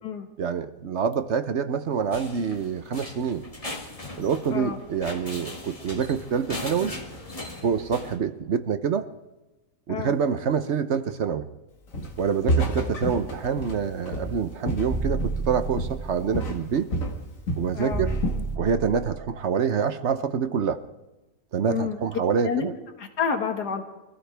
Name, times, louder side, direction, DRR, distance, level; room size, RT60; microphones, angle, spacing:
voice 1, 0.4-3.4 4.2-6.9 7.6-9.0 9.9-11.5 12.2-16.9 17.6-18.2 18.5-20.8 21.5-22.7, right 6 dB, 55° right, 10 dB, 1.0 m, -26 dB
sound 1, 2.1-8.2, left 2 dB, 20° left, 1.8 m, -38 dB
Walk footsteps, 11.9-12.2 12.5-15.5 15.8-16.1 16.3-17.7 18.1-18.5, right 1 dB, 55° left, 2.2 m, -29 dB
sound 2, 14.9-16.3 17.9-19.3, right 3 dB, 15° right, 0.7 m, -30 dB
voice 2, 17.7-18.1 21.7-22.0 22.4-22.7 23.0-23.8, left 6 dB, 85° left, 5 dB, 2.2 m, -28 dB
24.5 x 15.5 x 3.4 m, 1.0 s
omnidirectional pair, 1.7 m